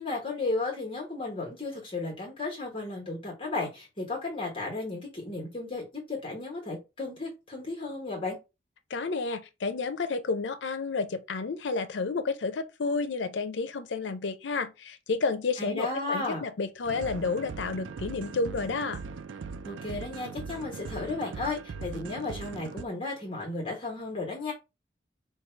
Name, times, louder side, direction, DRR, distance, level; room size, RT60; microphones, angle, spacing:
voice 1, 0.0-8.4 15.6-16.4 19.6-24.5, left 3 dB, 30° left, 1.2 m, -34 dB
voice 2, 8.9-19.0, left 4 dB, 80° left, 0.5 m, -31 dB
sound 1, 16.8-22.8, right 5 dB, 90° right, 0.4 m, -40 dB
4.7 x 2.3 x 4.4 m
head